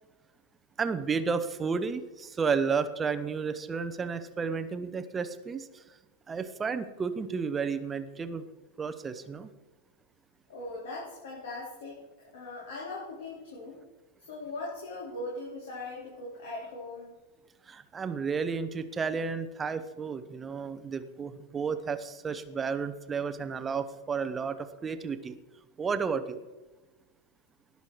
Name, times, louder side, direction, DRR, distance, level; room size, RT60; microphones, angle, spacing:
voice 1, 0.8-6.0 6.3-8.4 8.8-9.5 17.7-25.4 25.8-26.4, right 5 dB, 20° right, 11 dB, 0.9 m, -32 dB
voice 2, 10.5-13.8 14.2-17.1, left 2 dB, 60° left, -5 dB, 3.9 m, -40 dB
19.0 x 6.9 x 4.8 m, 1.2 s
figure-of-eight pair, 90°, 0 cm